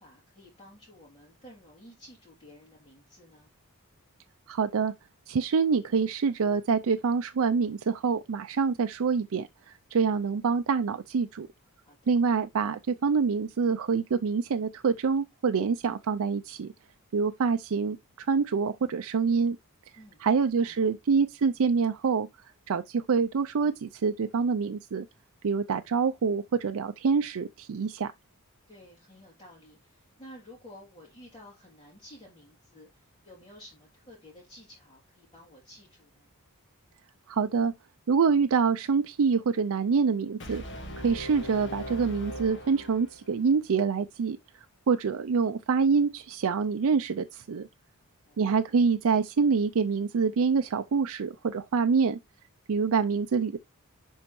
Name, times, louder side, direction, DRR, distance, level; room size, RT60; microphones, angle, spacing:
voice 1, 0.0-3.5 11.8-12.2 19.9-20.9 28.7-36.3 48.1-48.4, left 1 dB, 25° left, 2.9 m, -52 dB
voice 2, 4.5-4.9 5.3-11.5 12.1-16.7 17.1-18.0 18.3-19.6 20.2-22.3 22.7-25.0 25.4-28.1 37.3-37.7 38.1-40.6 41.0-44.4 44.9-47.7 48.4-52.2 52.7-53.6, right 5 dB, 70° right, 0.5 m, -26 dB
Brass instrument, 40.4-43.5, equal, 55° left, 1.6 m, -40 dB
11.0 x 4.3 x 3.1 m
head